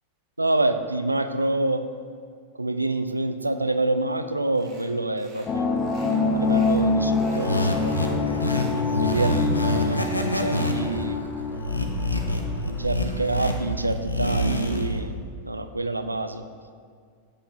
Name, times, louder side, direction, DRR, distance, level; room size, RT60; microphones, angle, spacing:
voice 1, 0.4-1.8 2.6-5.9 6.3-8.2 9.0-9.4 9.6-11.3 12.7-15.2 15.4-16.4, right 2 dB, 85° right, 10 dB, 0.3 m, -27 dB
sound 1, 4.6-4.9 5.2-5.5 5.8-6.8 7.1-7.5 7.8-9.4, right 2 dB, 25° right, 1.4 m, -48 dB
sound 2, 5.5-12.8, left 3 dB, 20° left, 0.5 m, -26 dB
sound 3, 7.3-15.0, left 1 dB, 85° left, 0.5 m, -26 dB
7.5 x 5.0 x 3.9 m, 2.1 s
figure-of-eight pair, 90°, 0 cm